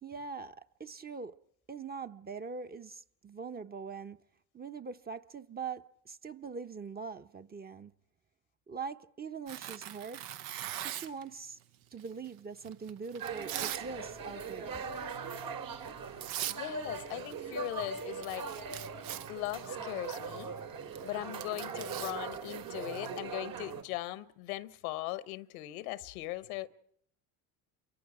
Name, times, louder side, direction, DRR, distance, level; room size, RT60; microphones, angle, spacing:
voice 1, 0.0-1.4 1.7-4.2 4.5-7.9 8.7-10.2 10.7-11.6 11.9-14.9, right 5 dB, 20° right, 0.8 m, -42 dB
Tearing, 9.5-11.2 12.0-13.9 14.2-14.5 14.9-15.2 15.9-16.0 16.2-16.6 16.9-17.4 17.7-17.8 18.0-23.2, right 12 dB, 80° right, 0.9 m, -41 dB
sound 1, 13.2-23.8, right 5 dB, 55° right, 2.7 m, -40 dB
voice 2, 16.5-18.5 19.3-20.5 21.0-26.7, left 17 dB, 85° left, 1.0 m, -39 dB
28.5 x 23.5 x 4.9 m
hypercardioid pair, 75°, 41 cm